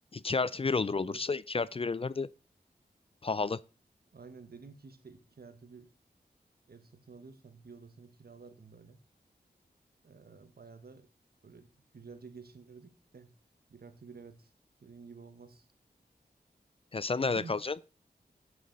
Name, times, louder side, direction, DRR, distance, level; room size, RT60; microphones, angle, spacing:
voice 1, 0.1-2.3 3.2-3.6 16.9-17.8, left 4 dB, 35° left, 0.4 m, -31 dB
voice 2, 4.1-5.9 6.7-9.0 10.0-11.1 11.4-13.3 13.7-14.5 14.8-15.7 17.3-17.6, right 4 dB, 65° right, 1.3 m, -51 dB
9.5 x 8.4 x 4.0 m
wide cardioid pair, 70°, 17 cm